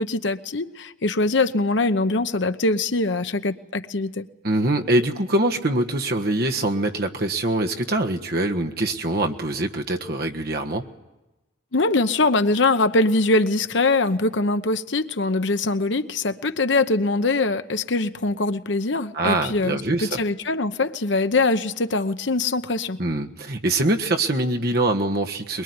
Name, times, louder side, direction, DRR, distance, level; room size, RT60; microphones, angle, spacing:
voice 1, 0.0-4.3 11.7-23.0, left 2 dB, 70° left, 0.9 m, -22 dB
voice 2, 4.4-10.8 19.1-20.2 23.0-25.6, right 2 dB, 50° right, 1.5 m, -23 dB
22.5 x 22.0 x 9.7 m
head